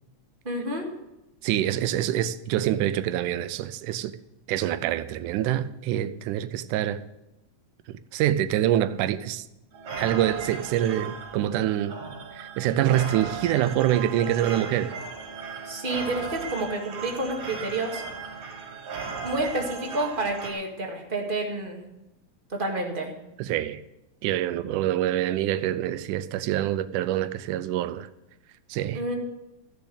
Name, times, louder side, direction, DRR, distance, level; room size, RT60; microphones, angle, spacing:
voice 1, 0.4-0.9 15.6-18.0 19.2-21.8 22.5-23.1 28.9-29.1, right 2 dB, 20° right, 1.7 m, -29 dB
voice 2, 1.4-4.1 4.5-7.0 8.1-9.4 10.0-11.9 12.4-14.9 23.4-23.8 24.2-28.1 28.7-29.0, right 12 dB, 90° right, 2.2 m, -25 dB
sound 1, 9.7-20.5, right 5 dB, 65° right, 3.1 m, -37 dB
14.5 x 7.0 x 8.0 m
omnidirectional pair, 3.5 m